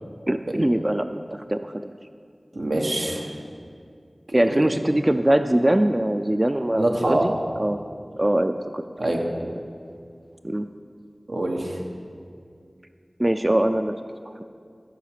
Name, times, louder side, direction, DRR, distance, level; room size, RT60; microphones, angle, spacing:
voice 1, 0.3-1.9 4.3-7.8 8.2-8.8 10.4-10.7 13.2-14.0 14.2-14.4, right 1 dB, 25° right, 9 dB, 0.3 m, -22 dB
voice 2, 2.5-3.3 4.3-4.7 6.8-7.3 9.0-9.2 11.3-11.8, right 1 dB, 90° right, 0 dB, 1.2 m, -25 dB
13.5 x 5.0 x 6.6 m, 2.2 s
wide cardioid pair, 60°, 0 cm